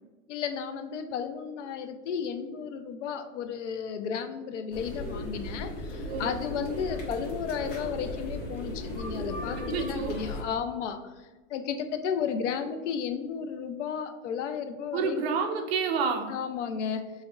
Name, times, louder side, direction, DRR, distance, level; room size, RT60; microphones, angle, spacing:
voice 1, 0.3-15.2 16.3-17.0, left 7 dB, 65° left, 8 dB, 0.5 m, -33 dB
sound 1, 4.7-10.4, left 1 dB, 50° left, 1.4 m, -36 dB
voice 2, 9.7-10.1 14.9-16.3, right 5 dB, 50° right, 4 dB, 0.6 m, -29 dB
4.1 x 3.4 x 2.3 m, 1.2 s
supercardioid pair, 155°, 39 cm